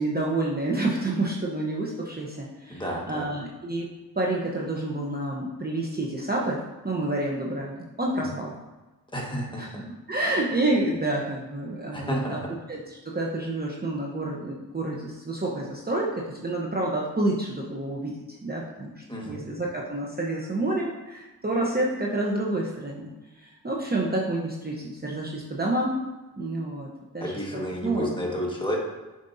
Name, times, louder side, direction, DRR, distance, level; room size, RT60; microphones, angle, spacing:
voice 1, 0.0-3.9 4.2-8.5 9.6-12.4 12.7-25.9 26.4-26.9 27.1-28.1, right 2 dB, 25° right, -3 dB, 1.0 m, -29 dB
voice 2, 2.7-3.2 9.1-9.8 11.9-12.4 19.1-19.4 27.2-28.8, equal, 10° left, -2 dB, 1.6 m, -31 dB
6.8 x 5.3 x 2.7 m, 1.1 s
cardioid pair, 60°, 40 cm